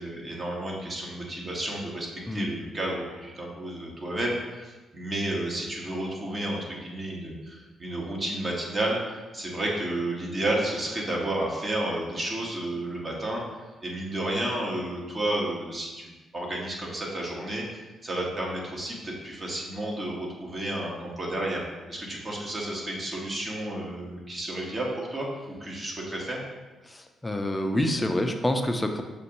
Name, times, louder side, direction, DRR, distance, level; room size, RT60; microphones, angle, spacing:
voice 1, 0.0-13.4 13.8-16.0 16.3-26.4, right 1 dB, 35° right, -2 dB, 1.3 m, -31 dB
voice 2, 27.2-29.0, left 1 dB, 15° left, 5 dB, 0.6 m, -26 dB
6.4 x 2.5 x 2.9 m, 1.2 s
hypercardioid pair, 50°, 0 cm